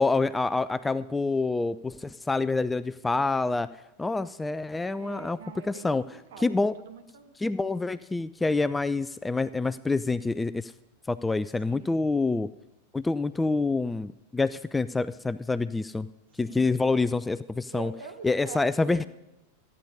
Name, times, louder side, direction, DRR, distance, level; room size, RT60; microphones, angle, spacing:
voice 1, 0.0-3.7 4.0-5.4 5.6-6.0 6.4-6.8 7.4-10.7 11.1-12.5 12.9-16.1 16.4-17.9 18.2-19.1, left 3 dB, 10° left, 15 dB, 0.3 m, -27 dB
voice 2, 4.9-7.3 11.6-12.0 16.5-16.7 17.7-19.1, right 7 dB, 55° right, 7 dB, 1.6 m, -45 dB
14.5 x 9.7 x 5.4 m, 0.92 s
figure-of-eight pair, 90°, 0 cm